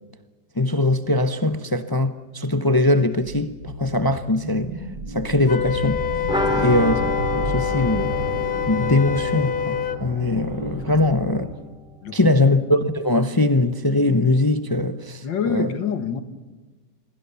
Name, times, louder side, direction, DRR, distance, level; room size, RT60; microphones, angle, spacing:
voice 1, 0.6-4.7 5.1-6.0 6.6-7.0 7.3-8.1 8.7-11.5 12.1-15.7, left 2 dB, 25° left, 0.4 m, -21 dB
sound 1, 3.5-11.5, right 1 dB, 80° right, 8.4 m, -32 dB
Wind instrument woodwind instrument, 5.5-10.0, left 11 dB, 55° left, 1.5 m, -26 dB
sound 2, 6.3-11.9 12.1-12.2 12.5-12.6, right 1 dB, 5° right, 2.1 m, -31 dB
voice 2, 12.0-12.5 15.2-16.2, left 7 dB, 85° left, 2.3 m, -28 dB
27.5 x 21.5 x 7.0 m
omnidirectional pair, 2.0 m